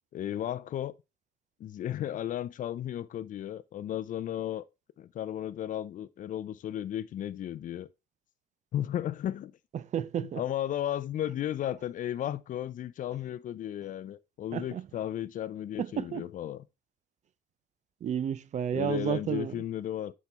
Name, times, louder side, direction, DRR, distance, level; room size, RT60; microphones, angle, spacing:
voice 1, 0.1-0.9 1.6-4.6 5.0-7.9 8.7-9.5 10.4-16.6 18.7-20.1, left 11 dB, 50° left, 0.5 m, -34 dB
voice 2, 9.7-10.4 14.5-14.9 15.8-16.3 18.0-19.6, right 9 dB, 45° right, 0.5 m, -32 dB
8.2 x 4.3 x 3.3 m
cardioid pair, 110°, 17 cm